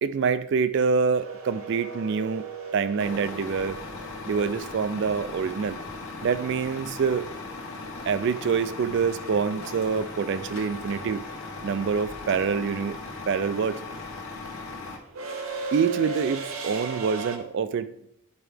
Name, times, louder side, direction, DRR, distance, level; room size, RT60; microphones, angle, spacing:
voice 1, 0.0-2.4 2.7-3.8 4.2-5.8 6.2-7.3 8.1-11.2 11.6-13.0 13.3-13.8 15.7-17.9, right 6 dB, 55° right, 14 dB, 0.3 m, -26 dB
sound 1, 1.1-5.2 7.6-7.7 9.0-9.3 9.6-17.4, right 3 dB, 80° right, 0.8 m, -37 dB
Truck, 3.0-15.0, left 3 dB, 75° left, 1.1 m, -38 dB
8.9 x 4.4 x 3.3 m, 0.77 s
head